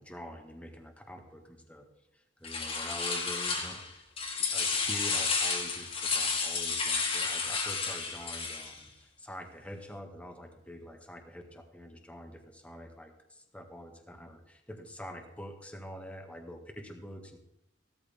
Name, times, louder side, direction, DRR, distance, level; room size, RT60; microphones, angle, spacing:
voice 1, 0.0-1.8 2.1-4.1 4.3-17.4, equal, 5° left, 3 dB, 1.6 m, -46 dB
sound 1, 2.4-3.9 4.2-8.8, left 4 dB, 30° left, 1.9 m, -31 dB
16.5 x 13.0 x 3.6 m, 0.86 s
head